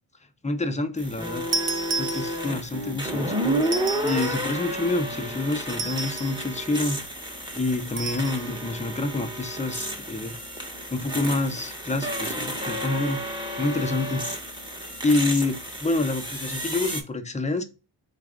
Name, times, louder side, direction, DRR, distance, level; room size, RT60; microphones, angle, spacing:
voice 1, 0.4-1.4 2.0-3.6 4.0-7.0 7.5-10.3 10.9-13.2 13.6-14.2 15.0-17.6, left 2 dB, 15° left, 7 dB, 0.5 m, -27 dB
sound 1, 1.0-17.0, equal, 10° right, 0.9 m, -31 dB
sound 2, 1.5-2.7 3.6-4.5 5.7-6.5 8.0-8.4, right 4 dB, 35° right, 0.6 m, -31 dB
3.9 x 2.4 x 3.4 m, 0.30 s
wide cardioid pair, 85°, 50 cm